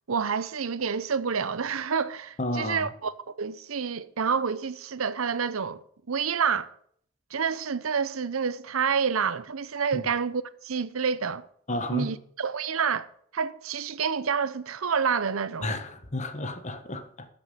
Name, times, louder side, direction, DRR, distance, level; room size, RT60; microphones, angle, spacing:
voice 1, 0.1-5.8 6.1-6.7 7.3-11.4 11.9-13.1 13.3-15.7, right 6 dB, 80° right, 0.7 m, -28 dB
voice 2, 2.4-2.9 9.9-10.0 11.7-12.1 15.6-17.3, left 1 dB, 35° left, 1.3 m, -32 dB
13.0 x 7.1 x 7.8 m
head